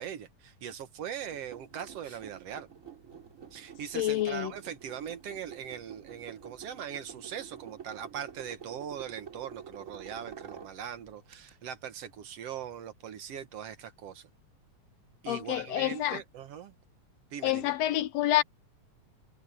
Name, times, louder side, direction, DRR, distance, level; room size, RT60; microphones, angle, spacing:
voice 1, 0.0-2.7 3.5-14.3 15.2-16.8 17.3-17.7, right 8 dB, 65° right, 2.0 m, -41 dB
sound 1, 1.2-11.5, right 7 dB, 30° right, 2.6 m, -49 dB
voice 2, 4.0-4.5 15.3-16.2 17.4-18.4, left 14 dB, 75° left, 1.7 m, -28 dB
omnidirectional pair, 3.3 m